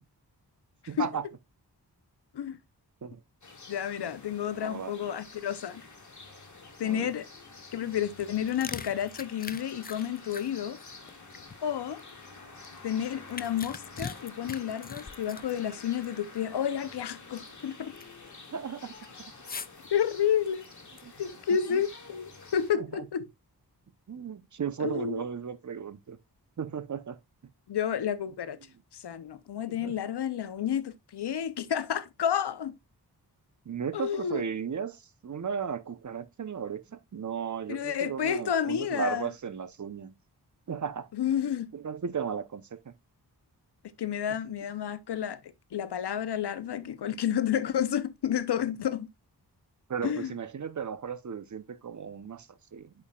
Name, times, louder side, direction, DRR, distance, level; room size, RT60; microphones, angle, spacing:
voice 1, 0.9-1.3 3.0-3.2 4.6-5.2 6.8-7.1 18.5-18.9 19.2-19.3 21.0-21.1 21.7-21.8 22.7-23.1 24.1-26.2 26.6-27.2 29.7-30.0 33.7-40.1 40.7-41.1 41.7-42.9 49.9-52.9, right 7 dB, 45° right, 0.8 m, -35 dB
sound 1, 3.4-22.7, left 3 dB, 45° left, 1.9 m, -49 dB
voice 2, 3.7-5.8 6.8-7.3 7.7-10.8 11.6-12.0 12.8-17.9 19.9-20.7 21.2-23.3 24.8-25.2 27.7-28.6 28.9-32.8 33.9-34.5 37.7-39.3 41.1-41.7 44.0-45.4 45.7-49.1 50.0-50.3, left 9 dB, 85° left, 0.7 m, -30 dB
sound 2, 8.1-12.1 12.6-16.1 16.4-16.5 17.0-17.6 18.0-18.3 19.5-19.9 20.5-21.4, left 5 dB, 25° left, 0.4 m, -42 dB
8.3 x 5.5 x 2.3 m
wide cardioid pair, 65°, 39 cm